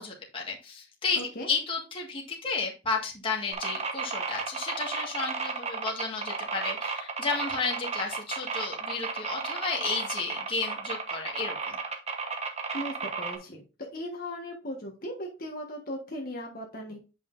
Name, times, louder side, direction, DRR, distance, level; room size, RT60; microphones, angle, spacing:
voice 1, 0.0-1.2 1.5-11.8, left 4 dB, 25° left, -1 dB, 1.7 m, -32 dB
voice 2, 1.2-1.5 12.7-13.6 13.9-17.0, equal, 45° left, 0 dB, 1.5 m, -37 dB
sound 1, 3.5-13.4, right 4 dB, 30° right, 1.1 m, -33 dB
9.2 x 5.6 x 2.6 m, 0.31 s
head